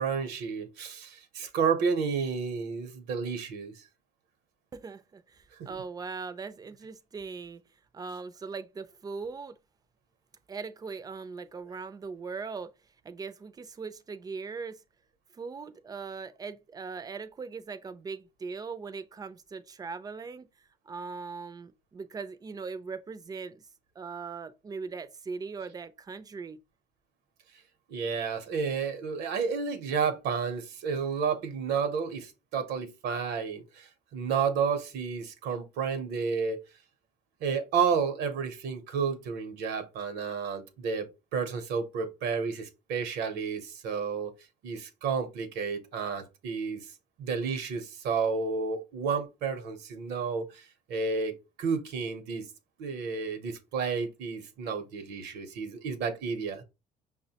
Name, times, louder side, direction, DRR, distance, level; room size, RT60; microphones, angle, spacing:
voice 1, 0.0-3.8 27.9-36.6 37.4-44.3 44.6-46.9 47.2-50.6 50.9-52.5 52.8-56.6, right 5 dB, 75° right, 0.7 m, -31 dB
voice 2, 4.7-7.6 7.9-9.6 10.5-12.7 13.0-14.8 15.3-20.5 20.9-23.6 24.0-26.6, right 4 dB, 20° right, 0.4 m, -40 dB
5.4 x 2.1 x 2.7 m
cardioid pair, 110°, 17 cm